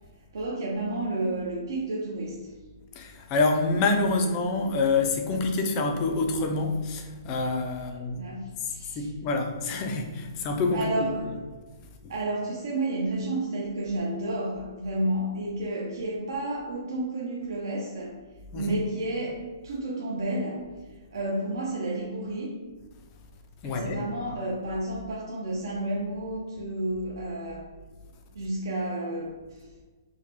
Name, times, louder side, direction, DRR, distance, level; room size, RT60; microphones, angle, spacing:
voice 1, 0.3-2.4 8.0-9.1 10.7-11.3 12.1-18.1 18.5-20.6 21.1-22.6 23.6-27.7 28.3-29.6, right 1 dB, 60° right, -3 dB, 0.6 m, -31 dB
voice 2, 3.0-8.2 8.6-11.1 18.5-18.8 23.6-24.0, left 3 dB, 20° left, 4 dB, 0.3 m, -27 dB
4.8 x 2.1 x 2.9 m, 1.3 s
hypercardioid pair, 175°, 2 cm